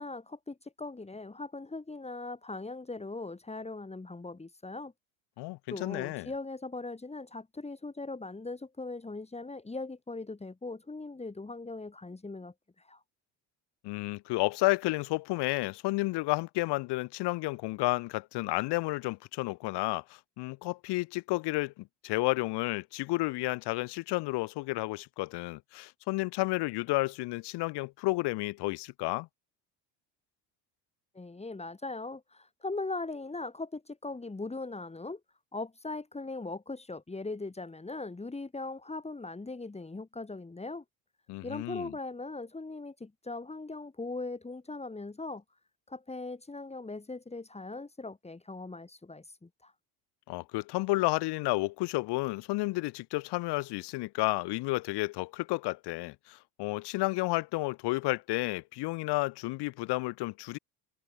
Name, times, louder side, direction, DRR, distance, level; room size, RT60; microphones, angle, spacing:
voice 1, 0.0-4.9 5.7-13.0 31.1-35.2 35.5-40.8 41.4-45.4 45.9-49.7, left 3 dB, 15° left, 5.1 m, -40 dB
voice 2, 5.4-6.3 13.8-20.0 20.4-29.3 41.3-41.9 50.3-60.6, left 21 dB, 65° left, 1.5 m, -31 dB
supercardioid pair, 90°, 43 cm